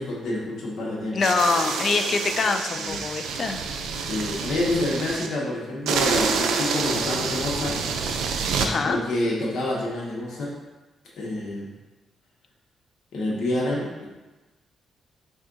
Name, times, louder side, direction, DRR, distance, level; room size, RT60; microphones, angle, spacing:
voice 1, 0.0-1.2 2.7-3.0 4.0-7.8 8.8-10.5 11.1-11.7 13.1-14.1, left 1 dB, 70° left, -5 dB, 0.9 m, -28 dB
voice 2, 1.1-3.6 8.6-9.0, left 4 dB, 50° left, 6 dB, 0.3 m, -24 dB
sound 1, 1.2-5.3 5.9-8.7, right 5 dB, 90° right, 0.4 m, -27 dB
4.4 x 2.4 x 3.8 m, 1.1 s
cardioid pair, 100°, 0 cm